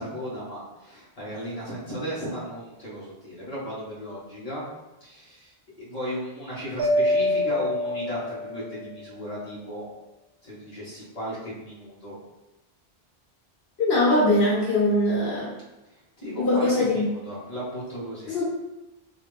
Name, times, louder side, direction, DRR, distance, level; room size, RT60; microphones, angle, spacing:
voice 1, 0.0-4.7 5.0-9.8 10.4-12.2 16.2-18.4, equal, 35° left, -9 dB, 1.5 m, -35 dB
Mallet percussion, 6.8-8.9, left 1 dB, 70° right, 1.0 m, -25 dB
voice 2, 13.8-15.5 16.4-17.1 18.3-18.4, left 1 dB, 80° left, -7 dB, 1.4 m, -21 dB
3.3 x 3.0 x 3.2 m, 1.0 s
omnidirectional pair, 1.0 m